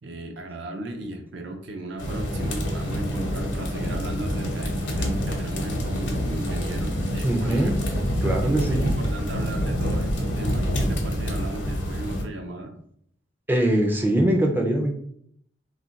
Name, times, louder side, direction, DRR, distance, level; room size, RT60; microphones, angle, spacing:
voice 1, 0.0-7.8 8.4-12.7, right 1 dB, 65° right, 5 dB, 0.5 m, -35 dB
sound 1, 2.0-12.2, equal, 70° left, 0.7 m, -27 dB
voice 2, 7.2-7.7 8.2-9.0 13.5-14.9, right 1 dB, 10° right, 1 dB, 0.3 m, -22 dB
2.3 x 2.1 x 3.8 m, 0.67 s
head